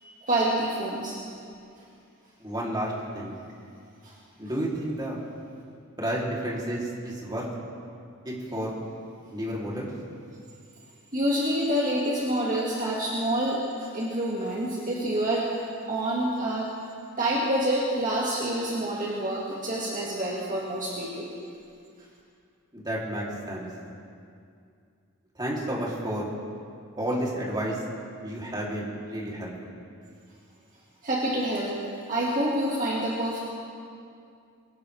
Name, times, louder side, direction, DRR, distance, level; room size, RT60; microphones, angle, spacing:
voice 1, 0.0-1.2 4.0-4.2 11.1-16.7 17.2-21.3 31.0-31.8 32.1-33.4, right 1 dB, 40° right, -5 dB, 2.0 m, -27 dB
voice 2, 2.4-3.4 4.4-5.2 6.0-7.5 8.2-8.7 9.3-9.9 22.7-23.7 25.3-26.3 27.0-27.8 28.2-29.7, right 1 dB, 20° right, -5 dB, 3.2 m, -31 dB
23.0 x 17.0 x 3.4 m, 2.4 s
head